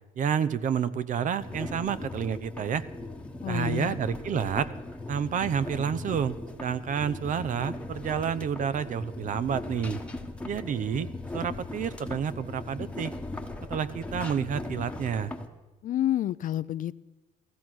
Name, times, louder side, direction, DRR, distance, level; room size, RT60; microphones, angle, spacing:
voice 1, 0.2-2.8 3.5-4.7 5.1-10.0 10.5-11.1 11.3-13.1 13.7-15.3, right 8 dB, 50° right, 16 dB, 0.7 m, -29 dB
sound 1, 1.4-15.5, left 2 dB, 5° left, 1.2 m, -38 dB
voice 2, 3.4-4.0 15.8-17.0, left 12 dB, 50° left, 16 dB, 0.5 m, -29 dB
15.0 x 15.0 x 6.2 m, 1.1 s
cardioid pair, 110°, 17 cm